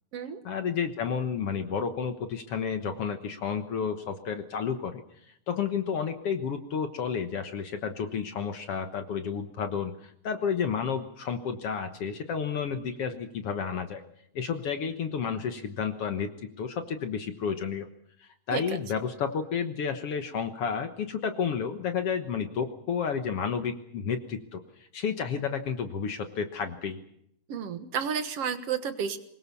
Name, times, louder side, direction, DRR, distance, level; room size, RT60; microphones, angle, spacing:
voice 1, 0.4-5.0 5.5-14.0 14.4-16.3 16.6-17.9 18.2-24.6 24.9-27.0, left 6 dB, 60° left, 8 dB, 2.0 m, -31 dB
voice 2, 27.5-29.2, right 7 dB, 60° right, 10 dB, 2.2 m, -31 dB
23.5 x 21.0 x 7.0 m, 0.74 s
omnidirectional pair, 3.4 m